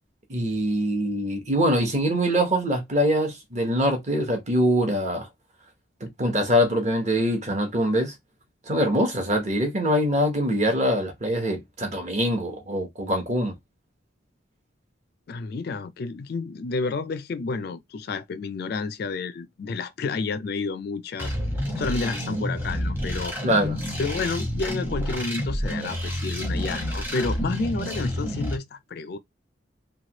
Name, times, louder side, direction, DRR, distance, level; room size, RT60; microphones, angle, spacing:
voice 1, 0.3-5.3 6.0-8.1 8.7-13.6 23.4-23.8, equal, 35° right, 0.9 m, -23 dB
voice 2, 15.3-21.3 21.8-23.3 24.0-29.2, left 4 dB, 50° left, 0.3 m, -30 dB
sound 1, 21.2-28.6, equal, 10° right, 0.8 m, -29 dB
3.1 x 2.2 x 2.8 m
head